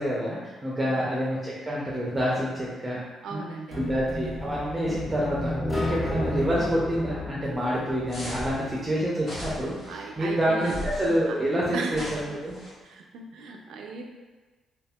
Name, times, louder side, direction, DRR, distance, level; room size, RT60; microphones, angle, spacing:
voice 1, 0.0-3.0 3.3-3.4 3.8-12.6, equal, 20° right, -6 dB, 0.5 m, -27 dB
voice 2, 3.2-4.0 9.9-10.8 11.3-11.4 11.7-12.1 12.8-14.0, right 4 dB, 75° right, 2 dB, 0.3 m, -36 dB
sound 1, 3.7-8.6, left 1 dB, 25° left, 0.6 m, -32 dB
sound 2, 8.1-8.6 9.2-9.9 10.6-11.2 11.9-12.7, left 1 dB, 60° left, 0.8 m, -36 dB
2.7 x 2.6 x 2.2 m, 1.3 s
cardioid pair, 90°, 0 cm